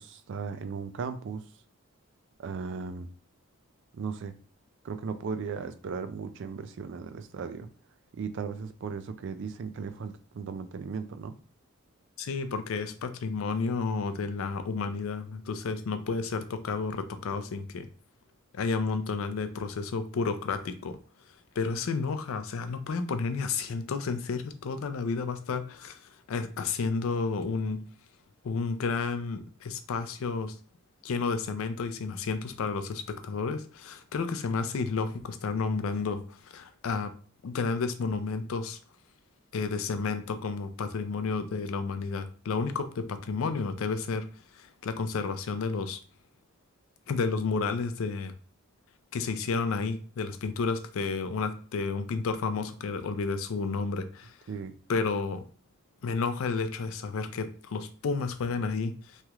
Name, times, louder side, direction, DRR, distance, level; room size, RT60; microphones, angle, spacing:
voice 1, 0.0-1.4 2.4-3.1 3.9-4.3 4.8-7.7 8.1-11.3 54.5-54.7, right 5 dB, 60° right, 10 dB, 0.3 m, -36 dB
voice 2, 12.2-17.9 18.5-21.0 21.6-26.0 26.3-27.8 28.4-30.6 31.0-37.1 37.4-38.8 39.5-44.3 44.5-46.0 47.1-48.3 49.1-54.4 54.9-55.4 56.0-59.2, left 4 dB, 65° left, 9 dB, 0.4 m, -31 dB
3.1 x 2.3 x 2.9 m, 0.39 s
head